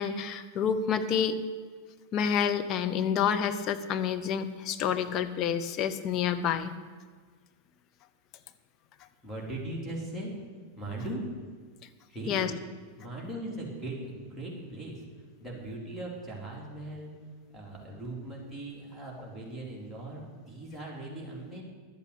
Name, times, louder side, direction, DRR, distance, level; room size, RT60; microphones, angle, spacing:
voice 1, 0.0-1.4 2.1-6.7 12.3-12.5, left 8 dB, 35° left, 8 dB, 0.8 m, -28 dB
voice 2, 9.2-10.3 10.8-11.3 12.1-12.4 13.0-15.0 15.4-17.1 17.5-21.6, right 1 dB, ahead, -3 dB, 3.9 m, -39 dB
11.5 x 8.3 x 8.5 m, 1.5 s
figure-of-eight pair, 90°, 0 cm